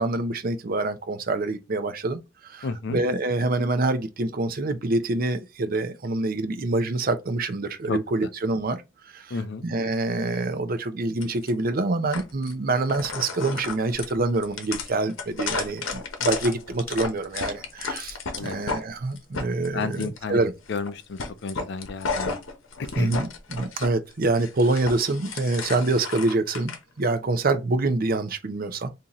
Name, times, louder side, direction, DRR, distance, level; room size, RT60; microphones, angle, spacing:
voice 1, 0.0-8.8 9.1-20.5 23.0-28.9, right 2 dB, 45° right, 0.6 m, -26 dB
voice 2, 2.6-3.0 7.9-8.0 9.3-9.6 18.4-18.6 19.7-20.4 20.7-22.4 22.8-23.1, left 4 dB, 60° left, 0.5 m, -31 dB
sound 1, 11.2-11.5 12.1-12.5 12.9-18.8 19.2-20.2 20.7-20.9 21.2-23.9 24.2-26.8, left 4 dB, 75° left, 0.8 m, -33 dB
3.9 x 2.7 x 2.9 m
head